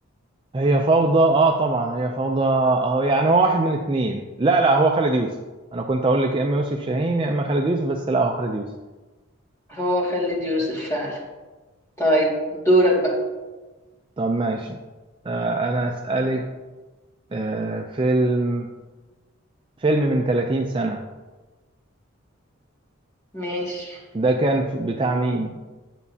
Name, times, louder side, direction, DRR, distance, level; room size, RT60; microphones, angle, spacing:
voice 1, 0.5-5.3 5.7-8.7 14.2-14.8 15.3-16.5 17.3-18.7 19.8-21.0 24.1-25.6, right 2 dB, 25° right, 2 dB, 0.4 m, -21 dB
voice 2, 9.7-11.2 12.0-13.1 23.3-24.0, equal, 15° left, -5 dB, 2.0 m, -22 dB
9.0 x 8.2 x 2.7 m, 1.2 s
head